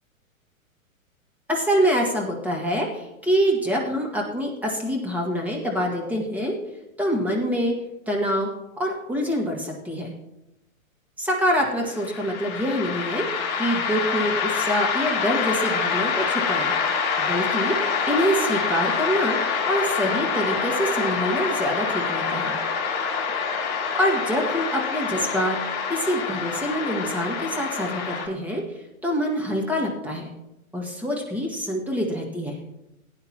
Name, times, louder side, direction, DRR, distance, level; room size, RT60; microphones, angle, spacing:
voice 1, 1.5-6.6 7.0-7.8 8.1-8.5 8.8-10.1 11.2-13.3 13.6-16.7 17.2-22.6 24.0-25.6 25.9-30.3 30.7-32.6, equal, 5° right, -1 dB, 1.9 m, -25 dB
sound 1, 11.8-28.3, left 5 dB, 35° left, 2.6 m, -26 dB
17.5 x 9.5 x 2.9 m, 0.92 s
hypercardioid pair, 125°, 41 cm